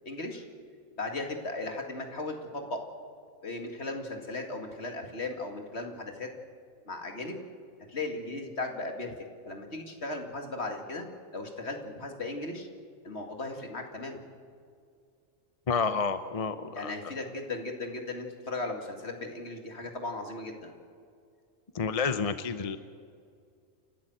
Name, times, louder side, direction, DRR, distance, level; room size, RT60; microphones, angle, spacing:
voice 1, 0.0-0.4 1.0-2.8 3.4-6.3 6.9-7.4 7.9-9.1 9.4-11.1 11.3-12.7 13.0-14.2 16.7-20.7, left 2 dB, 55° left, 3 dB, 2.5 m, -36 dB
voice 2, 15.7-16.9 21.7-22.8, left 5 dB, 35° left, 10 dB, 0.7 m, -29 dB
29.0 x 13.0 x 7.9 m, 2.3 s
omnidirectional pair, 1.4 m